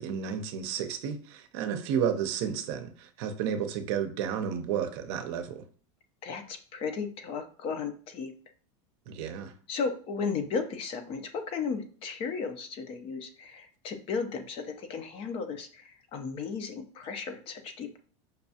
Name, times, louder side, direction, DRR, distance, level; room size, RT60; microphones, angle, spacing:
voice 1, 0.0-5.7 9.1-9.5, right 8 dB, 60° right, 0.6 m, -32 dB
voice 2, 6.2-8.3 9.7-18.0, left 5 dB, 35° left, 0.6 m, -35 dB
5.3 x 2.3 x 2.7 m
supercardioid pair, 140°, 16 cm